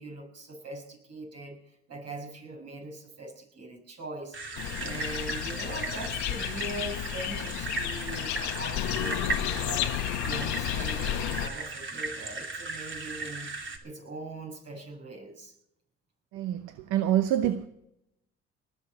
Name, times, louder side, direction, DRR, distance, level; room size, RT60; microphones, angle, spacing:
voice 1, 0.0-4.4 4.8-9.9 10.2-13.5 13.8-15.5, right 2 dB, 55° right, 6.6 m, -41 dB
sound 1, 4.3-13.8, right 3 dB, 40° right, 2.7 m, -37 dB
sound 2, 4.6-11.5, left 12 dB, 75° left, 0.9 m, -32 dB
voice 2, 16.3-17.7, right 11 dB, 75° right, 0.9 m, -26 dB
19.5 x 6.8 x 7.2 m
supercardioid pair, 70°, 30 cm